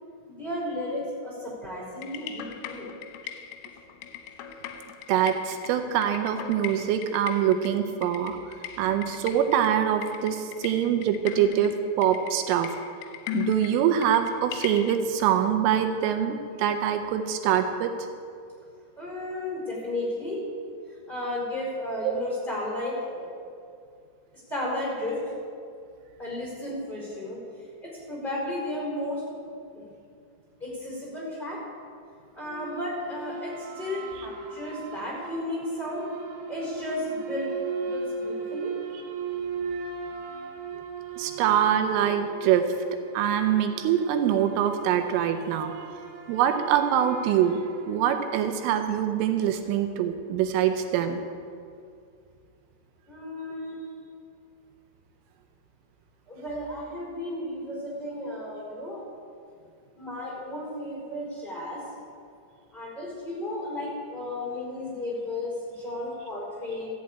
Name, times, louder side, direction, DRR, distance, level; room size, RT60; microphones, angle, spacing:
voice 1, 0.3-2.9 19.0-20.4 21.1-23.3 24.5-25.2 26.2-27.4 27.8-29.2 29.7-29.8 30.6-31.6 32.3-36.1 36.5-38.7 53.1-53.8 56.3-59.0 60.0-61.8 62.7-66.9, left 1 dB, 10° left, -5 dB, 3.5 m, -33 dB
sound 1, 2.0-15.0, left 11 dB, 80° left, 3.3 m, -39 dB
voice 2, 5.1-8.4 8.8-12.7 13.3-17.9 22.0-22.1 38.9-39.0 40.7-40.8 41.2-42.6 43.1-45.7 46.3-47.6 47.9-51.2, right 9 dB, 85° right, 6 dB, 3.3 m, -24 dB
sound 2, 32.4-49.0, right 5 dB, 65° right, 3.8 m, -38 dB
14.0 x 7.4 x 8.4 m, 2.4 s
omnidirectional pair, 5.8 m